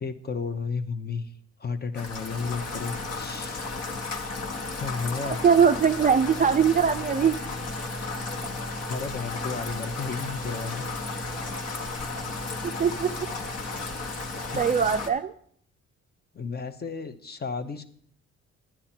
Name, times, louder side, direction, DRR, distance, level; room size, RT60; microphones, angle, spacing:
voice 1, 0.0-1.3 1.6-3.9 4.8-5.4 8.9-10.8 14.5-14.6 16.3-17.8, left 5 dB, 35° left, 10 dB, 0.9 m, -33 dB
Rain, 1.9-15.1, left 3 dB, 55° left, 1.5 m, -34 dB
voice 2, 5.3-7.4 12.2-12.3 12.8-13.1 14.6-15.3, right 7 dB, 30° right, 8 dB, 0.4 m, -21 dB
10.0 x 9.9 x 4.4 m, 0.63 s
cardioid pair, 90°, 30 cm